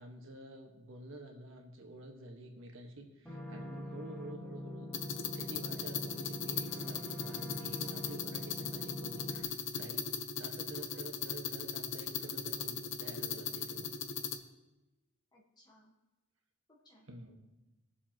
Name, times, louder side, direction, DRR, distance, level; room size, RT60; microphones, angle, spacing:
voice 1, 0.0-10.1 10.4-13.9 17.1-17.4, right 1 dB, 65° right, 2 dB, 1.5 m, -50 dB
sound 1, 3.3-9.4, left 1 dB, ahead, 1.5 m, -44 dB
sound 2, 4.9-14.4, left 7 dB, 60° left, 0.7 m, -39 dB
voice 2, 10.7-11.5 15.3-16.0 16.7-17.1, right 1 dB, 20° left, -1 dB, 1.3 m, -63 dB
20.5 x 7.1 x 3.0 m, 1.0 s
head